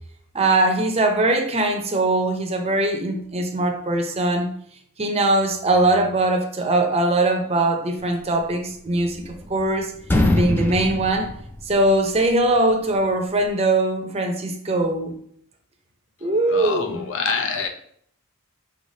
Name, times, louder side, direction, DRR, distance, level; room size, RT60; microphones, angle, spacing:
voice 1, 0.3-4.5 5.0-9.9 10.3-11.3 11.7-15.1 16.2-17.0, right 2 dB, 30° right, 0.6 m, -21 dB
sound 1, 8.9-9.7 10.0-12.1, left 1 dB, 10° left, 0.3 m, -23 dB
voice 2, 16.5-17.7, left 5 dB, 60° left, 0.6 m, -26 dB
5.3 x 3.2 x 2.7 m
head